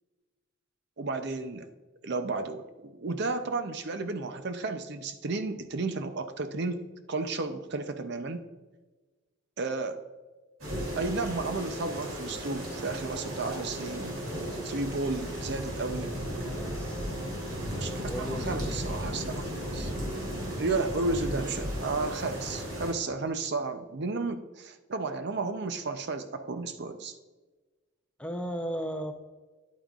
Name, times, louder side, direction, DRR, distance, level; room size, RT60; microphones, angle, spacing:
voice 1, 1.0-1.7 2.0-6.8 7.1-8.4 9.6-10.0 11.0-14.3 14.6-16.1 17.5-19.9 20.6-27.1, right 3 dB, 55° right, 9 dB, 0.6 m, -33 dB
sound 1, 10.6-22.9, equal, 85° right, 2.9 m, -35 dB
voice 2, 16.5-17.1 18.0-19.1 28.2-29.1, equal, 5° left, 4 dB, 0.6 m, -36 dB
10.5 x 8.9 x 2.4 m, 1.3 s
head